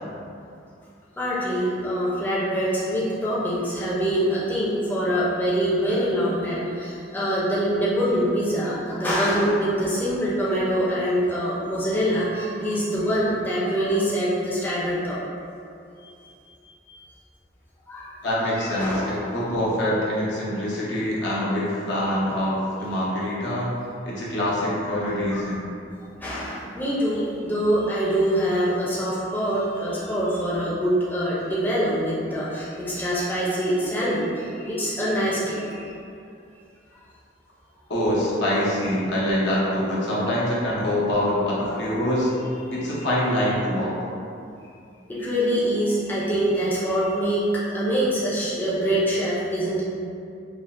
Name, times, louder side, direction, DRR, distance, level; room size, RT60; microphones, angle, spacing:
voice 1, 1.2-15.2 17.9-18.1 18.6-19.3 24.9-25.5 26.2-34.3 34.6-35.9 41.6-41.8 45.1-47.5 47.7-49.8, equal, 10° left, -8 dB, 0.5 m, -24 dB
voice 2, 18.2-23.7 24.0-25.6 27.1-27.2 28.5-28.6 37.9-42.3 42.7-43.9 46.4-46.5 46.9-47.0, left 1 dB, 75° left, -7 dB, 0.8 m, -25 dB
5.1 x 2.0 x 2.5 m, 2.5 s
head